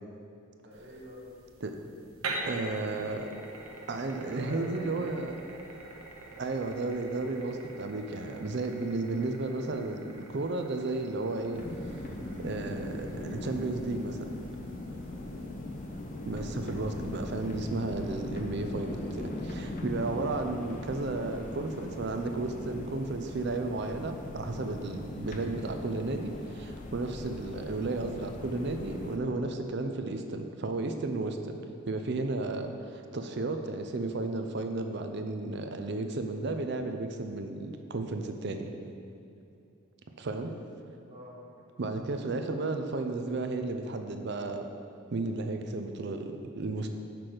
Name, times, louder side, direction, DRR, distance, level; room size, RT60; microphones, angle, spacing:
voice 1, 0.5-1.3 4.1-5.2 6.3-6.7 14.9-15.4 40.3-40.6 41.1-41.4, equal, 30° right, -12 dB, 1.5 m, -46 dB
sound 1, 0.7-17.6, right 2 dB, 75° right, 1.0 m, -45 dB
voice 2, 2.4-3.3 3.9-5.4 6.4-11.6 12.4-14.3 16.3-31.6 31.9-38.7 40.2-40.5 41.8-44.7 45.1-46.9, right 2 dB, 50° right, 6 dB, 0.5 m, -33 dB
sound 2, 11.5-29.2, left 1 dB, 35° left, 0.5 m, -40 dB
6.0 x 5.0 x 6.1 m, 2.5 s
head